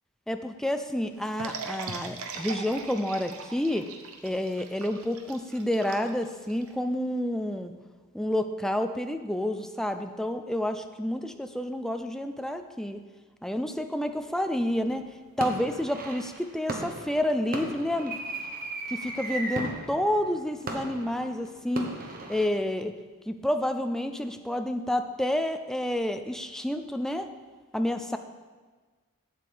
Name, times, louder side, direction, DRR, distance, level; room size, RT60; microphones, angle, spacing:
voice 1, 0.3-3.9 4.2-7.7 8.1-13.0 13.4-15.1 15.4-18.2 18.9-21.9 22.3-22.9 23.3-27.3 27.7-28.2, left 1 dB, ahead, 7 dB, 0.4 m, -29 dB
sound 1, 1.4-6.7, right 4 dB, 70° right, 0.9 m, -40 dB
sound 2, 14.6-15.0 15.4-22.5, right 2 dB, 40° right, 1.1 m, -37 dB
8.4 x 7.6 x 5.2 m, 1.4 s
head